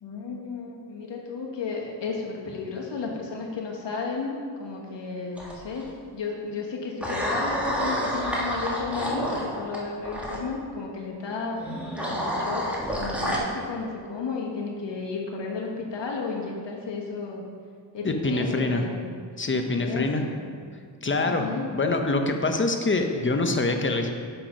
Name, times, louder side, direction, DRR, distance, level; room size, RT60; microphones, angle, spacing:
voice 1, 0.0-5.9 6.1-11.6 12.1-17.4 17.9-19.1 19.8-20.4 21.2-21.7, left 4 dB, 70° left, -1 dB, 1.5 m, -33 dB
sound 1, 5.4-5.8 7.0-10.4 11.6-13.4, equal, 5° right, 1.6 m, -29 dB
voice 2, 18.0-18.8 19.4-20.2 21.0-21.5 21.7-24.1, left 2 dB, 25° left, 4 dB, 0.8 m, -25 dB
6.7 x 5.9 x 5.2 m, 2.1 s
cardioid pair, 80°, 45 cm